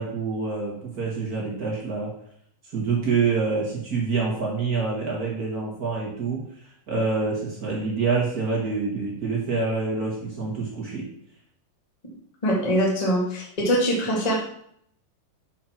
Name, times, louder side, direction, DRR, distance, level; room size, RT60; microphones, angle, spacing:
voice 1, 0.0-2.1 2.7-6.4 6.9-11.1, right 4 dB, 55° right, -4 dB, 1.0 m, -26 dB
voice 2, 12.4-14.4, equal, 25° left, -2 dB, 0.8 m, -23 dB
7.3 x 4.4 x 5.9 m, 0.68 s
omnidirectional pair, 4.5 m